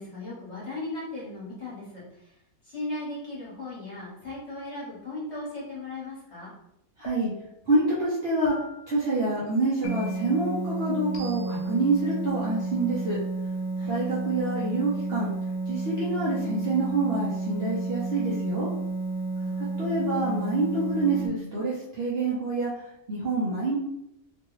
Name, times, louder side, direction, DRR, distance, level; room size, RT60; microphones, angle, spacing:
voice 1, 0.0-2.3 2.6-6.5 13.8-14.0 19.4-19.6, left 2 dB, 45° left, -7 dB, 1.4 m, -37 dB
sound 1, 7.0-7.6 8.4-9.0 9.8-10.4 11.1-11.7, left 1 dB, 70° left, 1.0 m, -45 dB
voice 2, 7.0-7.3 7.7-8.5 8.9-13.2 13.9-15.3 15.7-18.7 19.6-22.7 23.1-23.8, right 2 dB, 50° right, -8 dB, 0.8 m, -27 dB
sound 2, 9.8-21.3, right 3 dB, 75° right, 1.1 m, -31 dB
3.1 x 2.3 x 3.0 m, 0.82 s
omnidirectional pair, 1.7 m